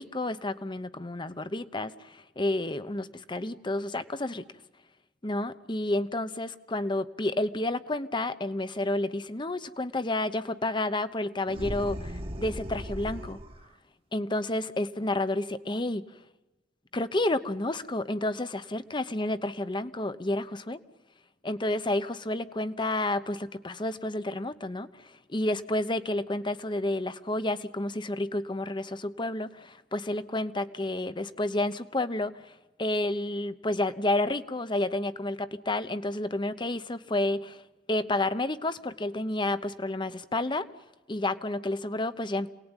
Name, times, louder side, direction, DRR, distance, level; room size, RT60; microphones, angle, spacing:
voice 1, 0.0-4.4 5.2-13.4 14.1-16.0 16.9-20.8 21.4-37.6 37.9-40.7 41.1-42.5, left 1 dB, 25° left, 12 dB, 1.0 m, -30 dB
sound 1, 11.5-13.7, equal, 30° right, 1.4 m, -37 dB
27.5 x 19.0 x 9.1 m, 1.1 s
head